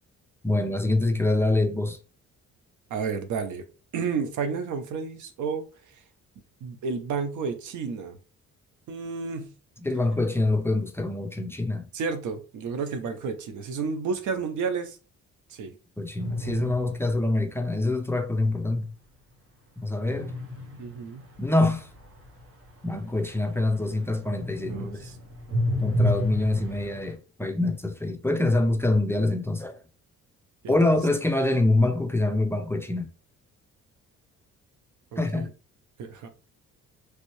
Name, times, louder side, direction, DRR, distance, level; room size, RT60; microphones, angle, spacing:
voice 1, 0.4-2.0 9.8-11.9 16.0-18.9 19.8-20.3 21.4-21.9 22.8-25.1 25.8-29.8 30.7-33.1 35.2-35.5, left 2 dB, 10° left, 0.5 m, -25 dB
voice 2, 2.9-3.6 3.9-5.6 6.6-8.2 8.9-9.5 11.9-15.0 15.5-15.7 20.8-21.2 24.7-25.1 30.6-30.7 35.1-35.5 36.0-36.3, right 5 dB, 80° right, 0.7 m, -31 dB
sound 1, 16.2-17.8 20.1-23.9 24.2-27.1, left 1 dB, 45° right, 1.0 m, -31 dB
3.2 x 2.7 x 3.1 m
cardioid pair, 90°, 30 cm